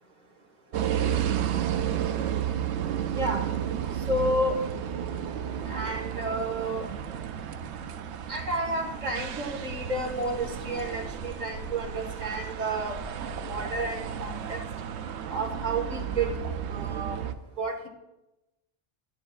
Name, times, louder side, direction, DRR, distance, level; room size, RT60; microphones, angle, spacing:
sound 1, 0.7-17.3, right 9 dB, 85° right, 0.9 m, -32 dB
voice 1, 4.1-4.6 5.7-6.9 8.3-13.0 13.5-14.6 15.3-16.3 16.7-17.2 17.6-17.9, right 1 dB, 40° right, 2 dB, 1.2 m, -31 dB
11.0 x 9.7 x 2.3 m, 0.97 s
omnidirectional pair, 1.1 m